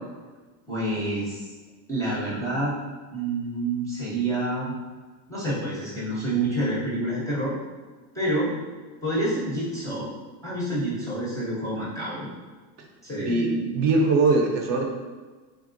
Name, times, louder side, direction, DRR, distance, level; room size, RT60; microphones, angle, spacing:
voice 1, 0.7-1.5 1.9-2.7 3.1-4.7 5.3-7.5 8.1-8.5 9.0-10.1 10.4-12.3 13.0-13.5, right 1 dB, 5° left, -7 dB, 0.5 m, -28 dB
voice 2, 13.2-14.8, right 3 dB, 45° right, 1 dB, 0.6 m, -21 dB
3.6 x 3.5 x 2.5 m, 1.3 s
supercardioid pair, 135°, 49 cm